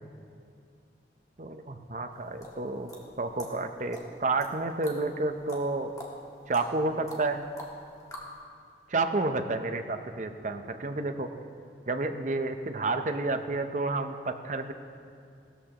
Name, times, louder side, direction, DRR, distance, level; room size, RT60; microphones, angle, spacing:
voice 1, 1.4-2.9 3.2-5.9 6.5-7.4 8.9-11.3 11.9-14.7, right 3 dB, 45° right, 7 dB, 0.7 m, -30 dB
sound 1, 2.1-8.4, equal, 20° left, 1.7 m, -45 dB
18.5 x 13.5 x 3.0 m, 2.3 s
head